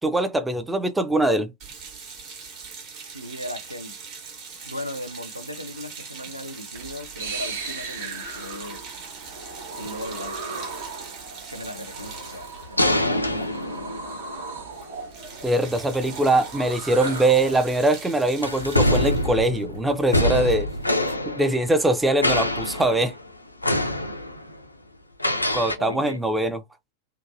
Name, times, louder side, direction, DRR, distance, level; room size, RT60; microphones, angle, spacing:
voice 1, 0.0-1.5 15.4-20.7 21.3-23.1 25.5-26.6, right 2 dB, 5° right, 0.4 m, -22 dB
sound 1, 1.6-14.0 14.2-14.4 14.7-21.1, right 5 dB, 40° right, 1.1 m, -42 dB
voice 2, 3.1-3.9 4.6-8.9 9.8-10.6 11.5-14.2 25.8-26.2, left 1 dB, 90° right, 0.4 m, -37 dB
sound 2, 6.7-17.8, right 4 dB, 60° right, 0.8 m, -37 dB
sound 3, 12.0-14.5 15.9-16.1 16.9-17.9 18.4-22.0 22.2-23.3 23.6-24.6 25.2-25.8, left 1 dB, 85° left, 0.3 m, -25 dB
2.8 x 2.1 x 2.5 m
figure-of-eight pair, 90°, 0 cm